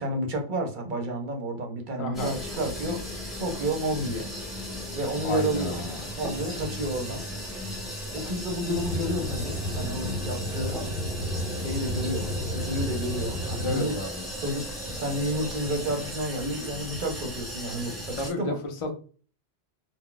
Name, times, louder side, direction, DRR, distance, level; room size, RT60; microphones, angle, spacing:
voice 1, 0.0-3.0 3.3-4.3 4.9-5.9 6.2-7.2 8.1-10.8 11.2-11.3 11.6-13.9 14.4-18.6, right 1 dB, 50° right, 4 dB, 0.7 m, -31 dB
voice 2, 2.0-2.3 5.2-6.1 13.6-14.2 18.2-18.9, left 2 dB, 40° left, 3 dB, 0.5 m, -31 dB
sound 1, 2.1-18.3, equal, ahead, 0.7 m, -36 dB
Aircraft / Engine, 8.8-13.8, equal, 65° left, 0.9 m, -32 dB
2.2 x 2.1 x 3.8 m, 0.39 s
omnidirectional pair, 1.2 m